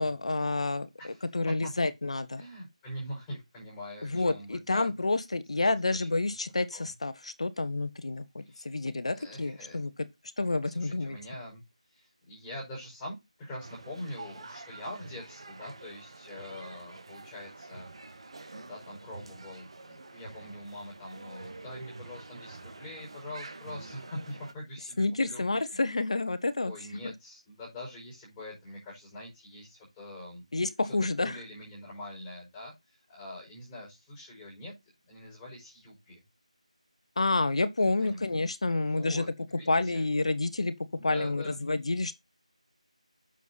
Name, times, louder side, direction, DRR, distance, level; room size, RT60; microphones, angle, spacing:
voice 1, 0.0-2.4 4.0-10.1 10.4-11.2 25.0-26.7 27.0-27.1 30.5-31.4 37.2-39.2 39.7-40.7 41.0-42.1, left 2 dB, 55° left, 1.3 m, -29 dB
voice 2, 1.0-1.7 2.4-4.9 5.6-5.7 6.2-6.3 6.7-6.9 8.4-8.7 9.1-9.8 10.5-11.6 11.9-25.4 25.7-25.8 26.6-30.4 31.0-34.7 35.1-36.2 38.0-38.2 38.8-40.0 41.0-41.6, left 1 dB, 10° left, 5.3 m, -44 dB
sound 1, 13.6-24.5, right 3 dB, 50° right, 1.9 m, -47 dB
8.3 x 7.0 x 4.1 m
figure-of-eight pair, 165°, 4 cm